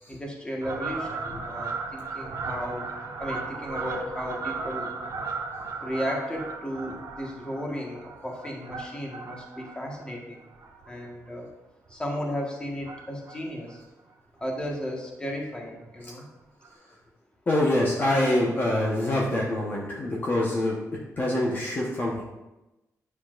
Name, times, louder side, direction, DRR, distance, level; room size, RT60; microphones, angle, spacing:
voice 1, 0.1-2.9 3.2-4.9 5.8-10.4 10.9-11.5 11.9-13.8 14.4-16.3, equal, 15° left, -1 dB, 1.5 m, -34 dB
Fowl, 0.6-11.4 11.9-12.1 12.8-13.4 13.7-13.8 14.0-14.1 14.4-14.5 14.8-15.0 16.0-16.1 16.6-16.7, right 4 dB, 70° right, 1.5 m, -36 dB
voice 2, 17.5-20.8 21.2-22.2, left 1 dB, 35° left, -3 dB, 1.1 m, -25 dB
9.5 x 7.0 x 2.5 m, 1.0 s
wide cardioid pair, 140°, 6 cm